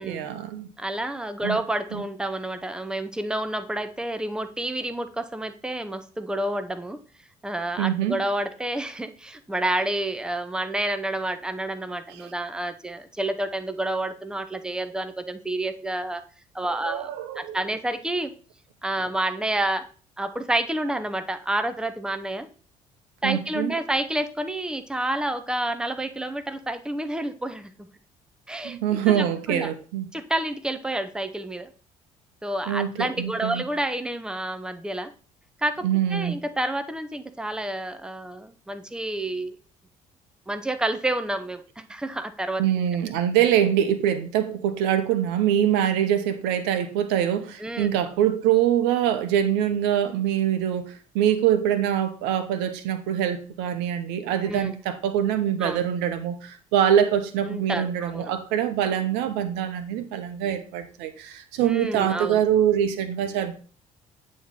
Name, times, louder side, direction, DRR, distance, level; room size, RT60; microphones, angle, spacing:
voice 1, 0.0-0.7 1.4-1.6 1.9-2.0 7.8-8.2 16.8-17.6 23.2-23.7 28.6-30.1 32.7-33.6 35.8-36.4 42.6-63.6, right 10 dB, 70° right, 0.9 m, -24 dB
voice 2, 0.8-7.0 7.4-16.2 16.5-17.1 17.4-18.3 18.8-19.9 20.2-22.5 23.2-27.9 28.5-29.7 30.1-31.7 32.4-35.1 35.6-39.5 40.5-42.6 47.6-47.9 54.4-54.7 55.6-55.8 57.5-58.3 61.6-62.4, right 1 dB, 5° right, 0.8 m, -29 dB
9.3 x 3.2 x 5.4 m
hypercardioid pair, 55°, 18 cm